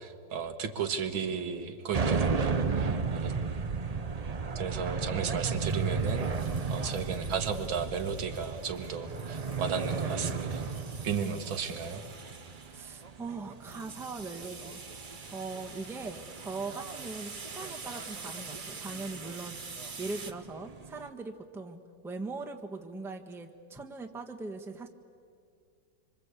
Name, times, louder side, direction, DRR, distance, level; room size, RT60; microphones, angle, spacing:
voice 1, 0.0-3.3 4.6-6.3 6.7-10.7 11.0-12.0, right 6 dB, 85° right, 7 dB, 2.2 m, -34 dB
sound 1, 1.9-21.1, right 5 dB, 55° right, 0.4 m, -34 dB
sound 2, 5.5-20.3, right 4 dB, 30° right, 1.0 m, -47 dB
voice 2, 12.7-14.8 15.3-19.6 20.0-24.9, right 3 dB, ahead, 2 dB, 1.1 m, -40 dB
26.0 x 25.5 x 8.3 m, 2.3 s
omnidirectional pair, 2.1 m